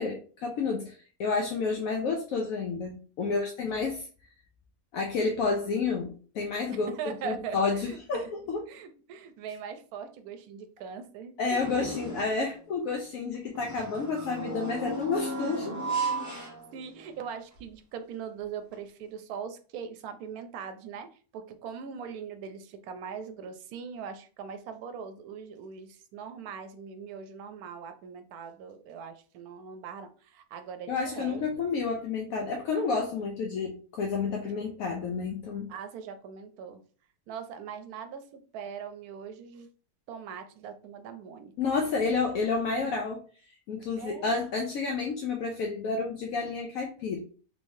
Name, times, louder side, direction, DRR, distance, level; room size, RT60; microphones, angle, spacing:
voice 1, 0.0-4.1 4.9-6.9 7.2-8.6 11.4-15.8 30.9-35.7 41.6-43.2 43.7-47.2, left 4 dB, 75° left, 1 dB, 1.0 m, -30 dB
voice 2, 6.7-8.3 8.7-11.4 16.3-31.4 35.7-36.8 37.3-39.7 40.1-41.5 42.0-42.2 44.0-44.3, right 6 dB, 85° right, 9 dB, 1.1 m, -41 dB
sound 1, 11.6-12.5 13.5-17.2 17.6-17.7 18.7-18.8, right 2 dB, 15° right, 0.6 m, -35 dB
3.4 x 3.2 x 2.6 m, 0.40 s
omnidirectional pair, 1.6 m